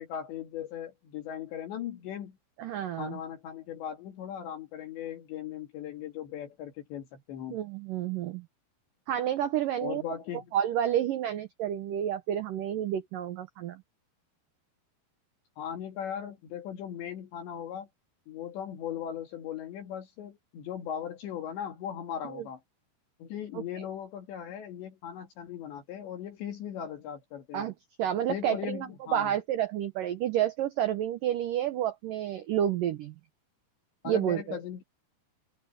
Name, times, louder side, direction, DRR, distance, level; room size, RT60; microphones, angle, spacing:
voice 1, 0.0-2.4 3.0-7.6 9.8-10.5 15.6-17.9 18.3-22.6 23.2-27.7 28.3-29.4 34.0-34.8, left 9 dB, 70° left, 4.4 m, -38 dB
voice 2, 2.6-3.2 7.5-8.5 9.1-10.0 10.5-13.8 27.5-27.7 28.0-33.1 34.0-34.6, right 11 dB, 75° right, 1.9 m, -30 dB
omnidirectional pair, 5.4 m